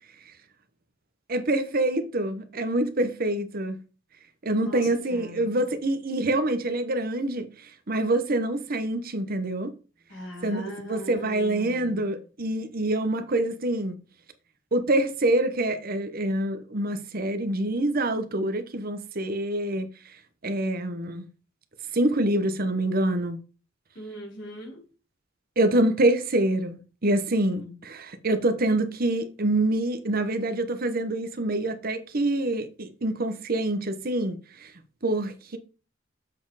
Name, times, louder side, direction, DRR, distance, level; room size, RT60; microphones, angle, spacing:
voice 1, 1.3-3.8 4.4-9.7 10.4-14.0 14.7-19.9 20.4-21.3 21.9-23.4 25.6-34.7 35.0-35.6, right 1 dB, 50° right, 0.9 m, -26 dB
voice 2, 4.6-5.5 10.1-12.2 23.9-24.8 27.4-27.8, equal, 70° left, 4.2 m, -40 dB
7.6 x 4.3 x 4.8 m
head